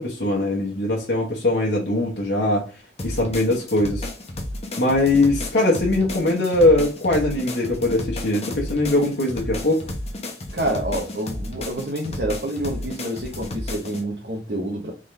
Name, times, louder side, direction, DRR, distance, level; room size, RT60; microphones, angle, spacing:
voice 1, 0.0-2.7 3.0-4.1 4.8-9.9, left 2 dB, 65° left, 1.1 m, -21 dB
sound 1, 3.0-14.0, left 1 dB, 35° left, 0.9 m, -32 dB
voice 2, 10.5-14.9, right 1 dB, 65° right, 1.0 m, -28 dB
3.8 x 3.6 x 3.3 m
head